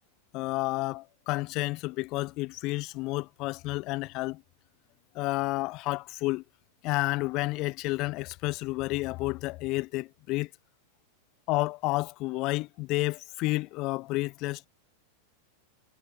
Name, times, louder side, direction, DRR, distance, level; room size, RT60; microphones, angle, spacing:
voice 1, 0.3-4.4 5.1-6.4 6.8-10.5 11.5-14.7, left 22 dB, 40° left, 0.5 m, -30 dB
figure-of-eight pair, 90°, 0 cm